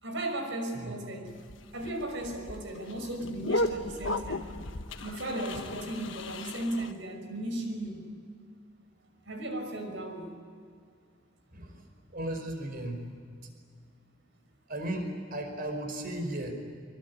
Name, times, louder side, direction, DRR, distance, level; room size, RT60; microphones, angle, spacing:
voice 1, 0.0-1.4 1.7-4.5 5.0-8.1 9.3-10.4, right 1 dB, 70° right, 5 dB, 5.9 m, -36 dB
sound 1, 1.3-6.9, left 1 dB, 70° left, 1.4 m, -35 dB
voice 2, 12.1-13.0 14.7-16.5, right 1 dB, 50° right, 5 dB, 5.2 m, -35 dB
25.5 x 24.0 x 9.6 m, 2.2 s
head